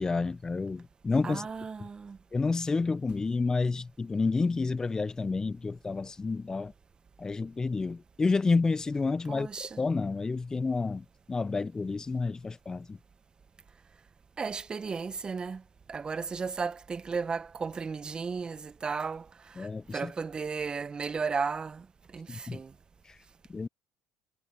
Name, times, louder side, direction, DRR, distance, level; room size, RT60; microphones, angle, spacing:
voice 1, 0.0-1.5 1.8-1.9 2.3-6.7 7.2-13.0 19.6-20.1 22.3-22.6 23.1-23.2 23.5-23.7, left 4 dB, 20° left, 0.7 m, -30 dB
voice 2, 1.2-2.2 9.3-9.8 14.4-15.6 15.9-21.9 22.1-22.7, right 5 dB, 30° right, 1.2 m, -34 dB
hypercardioid pair, 70°, 3 cm